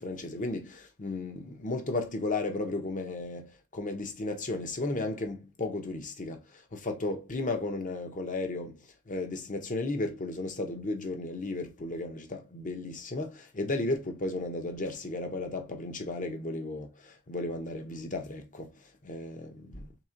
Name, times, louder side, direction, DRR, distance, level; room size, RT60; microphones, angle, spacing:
voice 1, 0.0-6.4 6.7-8.7 9.1-18.7 19.0-19.8, left 2 dB, 35° left, 0.8 m, -34 dB
3.6 x 2.9 x 3.8 m
head